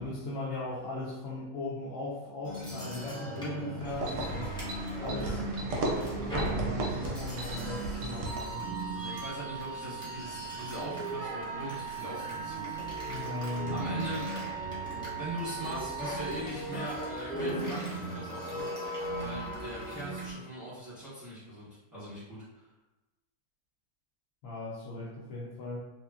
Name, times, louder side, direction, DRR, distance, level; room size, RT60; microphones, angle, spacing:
voice 1, 0.0-4.6 5.0-8.7 13.1-13.8 24.4-25.8, left 2 dB, 70° left, -7 dB, 1.0 m, -38 dB
sound 1, 2.4-20.3, right 1 dB, 5° left, 0.5 m, -38 dB
sound 2, 3.8-8.7, right 2 dB, 70° right, 0.8 m, -36 dB
voice 2, 5.1-5.4 8.9-12.7 13.7-14.3 14.9-22.7, right 1 dB, 15° right, -11 dB, 0.8 m, -41 dB
Wind instrument woodwind instrument, 8.2-16.4, right 7 dB, 45° left, 1.0 m, -40 dB
2.8 x 2.6 x 2.3 m, 1.1 s
omnidirectional pair, 1.5 m